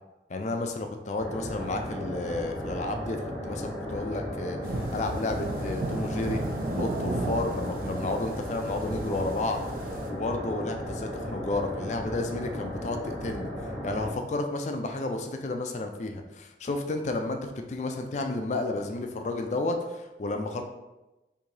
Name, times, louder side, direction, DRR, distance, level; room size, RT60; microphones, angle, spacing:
voice 1, 0.3-4.6 4.9-6.4 6.7-13.5 13.8-20.6, left 2 dB, 40° left, 5 dB, 0.4 m, -32 dB
sound 1, 1.2-14.1, equal, 25° right, 1.0 m, -35 dB
sound 2, 4.6-10.1, right 2 dB, 50° right, 0.4 m, -34 dB
4.6 x 2.7 x 2.6 m, 1.0 s
head